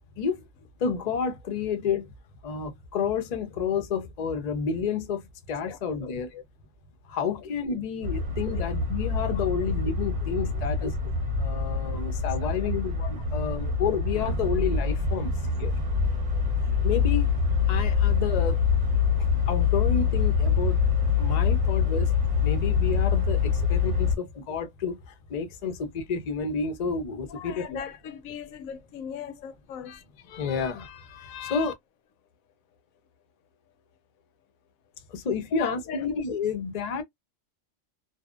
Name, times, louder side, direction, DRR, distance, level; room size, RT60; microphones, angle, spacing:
voice 1, 0.2-0.5 0.8-2.1 2.4-6.3 7.1-10.9 11.4-15.3 15.6-15.7 16.8-17.3 17.7-18.7 19.4-20.8 21.2-22.1 22.4-27.8 29.8-31.7 35.1-37.0, left 6 dB, 65° left, 0.4 m, -30 dB
voice 2, 5.7-6.4 9.4-9.7 10.2-10.6 12.4-12.7 13.5-13.7 27.3-30.0 31.3-31.5 35.5-36.1, left 8 dB, 85° left, 1.0 m, -40 dB
sound 1, 8.0-24.2, left 5 dB, 35° right, 0.8 m, -25 dB
2.6 x 2.0 x 2.3 m
omnidirectional pair, 1.4 m